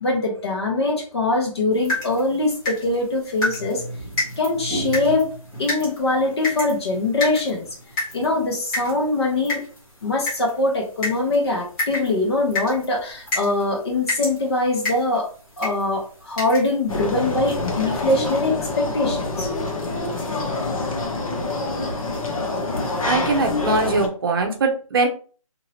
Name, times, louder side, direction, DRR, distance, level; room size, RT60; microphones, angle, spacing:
voice 1, 0.0-3.8 4.4-5.3 5.6-7.7 8.1-9.6 10.0-15.3 15.6-19.5, left 2 dB, 50° left, 0 dB, 1.2 m, -22 dB
sound 1, 1.7-17.1, left 2 dB, 15° left, 1.0 m, -31 dB
sound 2, 16.9-24.1, left 2 dB, 75° left, 1.1 m, -26 dB
voice 2, 23.1-25.1, right 3 dB, 40° right, 3 dB, 0.7 m, -21 dB
2.9 x 2.7 x 2.8 m, 0.39 s
figure-of-eight pair, 160°, 18 cm